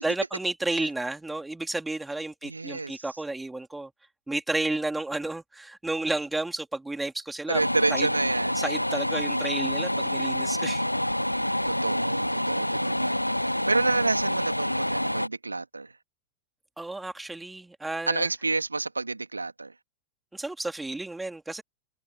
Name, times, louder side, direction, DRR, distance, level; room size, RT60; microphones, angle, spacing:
voice 1, 0.0-3.9 4.3-7.6 7.9-8.1 8.6-10.8 16.8-18.3 20.3-21.6, right 2 dB, 5° right, 3.6 m, -32 dB
voice 2, 2.4-3.0 7.5-8.6 11.6-15.9 18.1-19.7, right 3 dB, 80° right, 2.8 m, -29 dB
sound 1, 7.5-15.3, left 1 dB, 90° left, 1.0 m, -27 dB
figure-of-eight pair, 90°, 0 cm